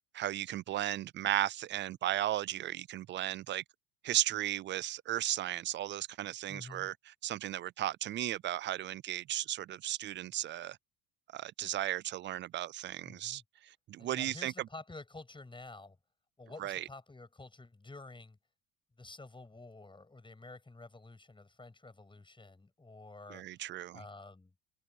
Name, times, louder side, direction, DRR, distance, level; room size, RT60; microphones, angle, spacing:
voice 1, 0.1-3.6 4.0-10.8 11.3-14.5 16.6-16.8 23.3-24.0, right 13 dB, 30° right, 0.4 m, -35 dB
voice 2, 6.5-6.9 13.0-13.4 14.0-16.0 16.4-18.4 19.0-23.4 23.9-24.5, left 3 dB, 10° left, 7.7 m, -50 dB
open air
cardioid pair, 125°, 40 cm